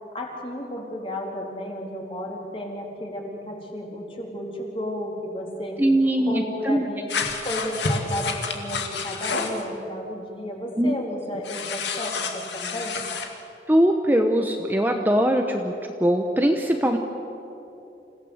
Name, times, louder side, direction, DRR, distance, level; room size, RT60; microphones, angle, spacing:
voice 1, 0.1-5.8 6.3-7.1 7.4-13.0, equal, 30° left, 0 dB, 3.7 m, -33 dB
voice 2, 5.8-6.9 10.8-11.0 13.7-15.7 16.0-17.0, equal, 10° right, 3 dB, 1.0 m, -21 dB
sound 1, 7.1-9.6 11.4-13.3, left 4 dB, 85° left, 2.2 m, -29 dB
27.5 x 16.5 x 8.0 m, 2.9 s
head